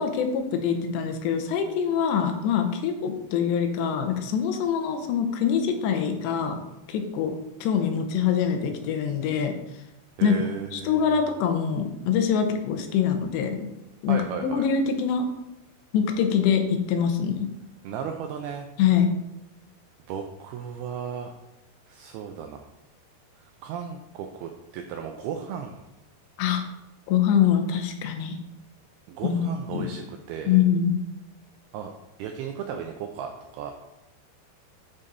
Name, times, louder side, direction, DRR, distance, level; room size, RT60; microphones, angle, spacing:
voice 1, 0.0-6.6 6.9-7.3 7.6-9.6 10.2-10.4 10.7-13.7 14.0-15.3 15.9-17.5 18.8-19.1 26.4-26.6 27.1-28.4 29.2-29.4 29.7-29.9 30.5-30.9, left 7 dB, 85° left, 5 dB, 2.9 m, -24 dB
voice 2, 10.2-11.2 14.1-14.7 17.8-18.7 20.1-21.3 21.9-22.7 23.4-25.8 29.1-30.6 31.7-31.9 32.2-33.7, right 7 dB, 85° right, 4 dB, 2.2 m, -35 dB
11.0 x 4.0 x 3.9 m, 0.92 s
omnidirectional pair, 5.1 m